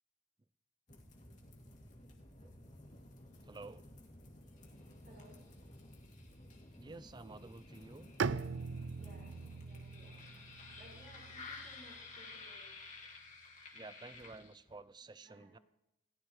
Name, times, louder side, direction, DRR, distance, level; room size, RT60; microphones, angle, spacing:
sound 1, 0.9-14.8, left 2 dB, 40° left, 2.6 m, -53 dB
voice 1, 3.4-3.9 6.8-8.1 13.7-15.6, right 3 dB, 25° right, 16 dB, 0.5 m, -51 dB
voice 2, 5.0-5.4 8.9-10.3 10.8-12.8 15.2-15.6, equal, 55° right, -4 dB, 5.4 m, -61 dB
Bowed string instrument, 8.2-12.1, right 5 dB, 80° right, 0.5 m, -41 dB
28.0 x 15.0 x 3.2 m, 0.90 s
head